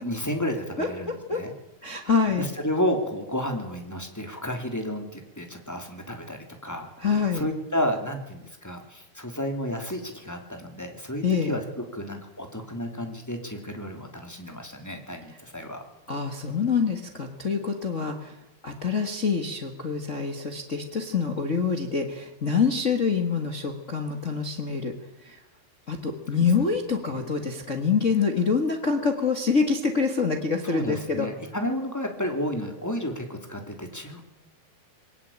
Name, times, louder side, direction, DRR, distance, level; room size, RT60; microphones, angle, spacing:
voice 1, 0.0-1.5 2.4-11.6 11.9-15.8 27.2-27.3 30.6-34.2, equal, 5° left, 4 dB, 2.6 m, -31 dB
voice 2, 0.8-1.4 1.8-2.5 7.0-7.5 11.2-11.6 16.1-18.3 18.6-24.9 25.2-25.4 25.9-31.3, left 5 dB, 50° left, 5 dB, 0.9 m, -26 dB
22.5 x 18.5 x 8.8 m, 0.91 s
omnidirectional pair, 4.2 m